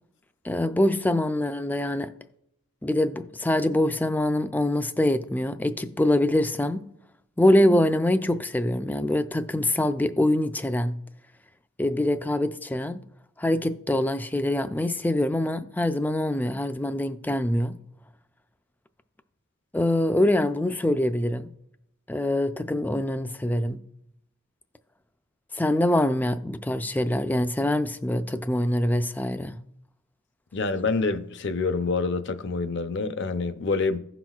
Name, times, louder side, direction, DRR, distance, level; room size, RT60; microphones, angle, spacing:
voice 1, 0.4-2.1 2.8-6.9 7.4-11.0 11.8-13.1 13.4-17.8 19.7-21.5 22.1-23.8 25.5-29.6, left 1 dB, 10° left, 0.3 m, -24 dB
voice 2, 30.5-34.0, left 4 dB, 55° left, 0.6 m, -27 dB
16.0 x 5.9 x 2.4 m
head